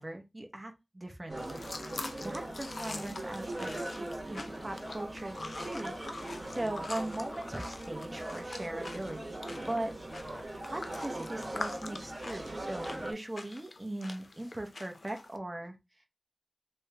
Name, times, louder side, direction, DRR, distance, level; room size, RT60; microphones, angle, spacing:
voice 1, 0.0-1.6 2.0-5.9 6.2-9.2 9.7-9.9 10.7-15.7, right 1 dB, 35° right, 1.0 m, -39 dB
sound 1, 1.3-13.1, right 1 dB, 70° right, 1.2 m, -40 dB
sound 2, 1.4-15.4, left 2 dB, 80° left, 0.5 m, -45 dB
3.1 x 3.1 x 3.4 m
wide cardioid pair, 45°, 0 cm